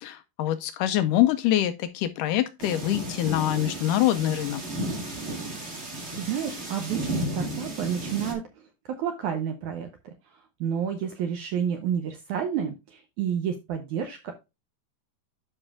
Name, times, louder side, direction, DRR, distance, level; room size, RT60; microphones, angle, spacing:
voice 1, 0.0-4.6, left 13 dB, 85° left, 1.9 m, -25 dB
sound 1, 2.6-8.3, right 1 dB, 30° right, 1.2 m, -33 dB
voice 2, 6.1-10.1 10.6-14.3, right 8 dB, 75° right, 1.8 m, -30 dB
12.0 x 5.4 x 2.3 m
omnidirectional pair, 4.3 m